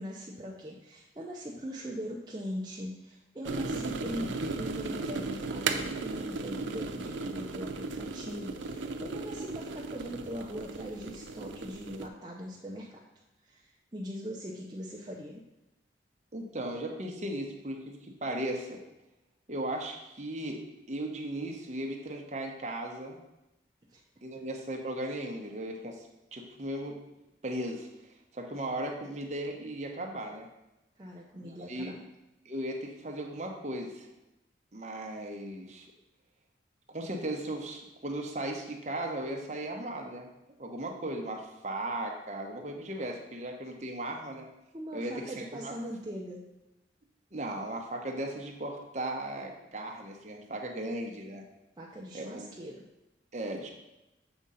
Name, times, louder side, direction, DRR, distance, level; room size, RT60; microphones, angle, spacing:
voice 1, 0.0-13.0 13.4-15.4 23.9-24.0 31.0-32.0 44.7-46.4 51.8-52.8, equal, 20° right, -4 dB, 0.6 m, -41 dB
sound 1, 3.4-12.1, right 3 dB, 90° right, 0.6 m, -36 dB
voice 2, 16.3-18.8 19.5-20.6 20.9-23.2 24.2-27.0 27.4-27.9 28.3-30.5 31.3-31.9 32.4-34.1 34.7-35.9 36.9-40.3 40.6-44.5 44.9-45.7 47.3-51.4 52.1-52.5 53.3-53.7, right 1 dB, 40° right, 1 dB, 1.0 m, -37 dB
7.1 x 3.7 x 5.5 m, 0.95 s
head